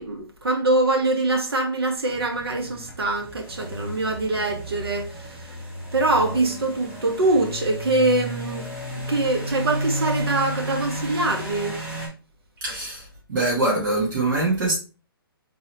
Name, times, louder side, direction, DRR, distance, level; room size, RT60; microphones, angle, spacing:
voice 1, 0.0-5.6 5.9-8.7 8.9-11.8, right 2 dB, 90° right, 1.2 m, -24 dB
sound 1, 2.1-12.1, equal, 10° right, 0.9 m, -33 dB
voice 2, 12.6-14.7, right 2 dB, 55° right, 2.0 m, -23 dB
3.8 x 2.9 x 3.0 m
hypercardioid pair, 150°, 13 cm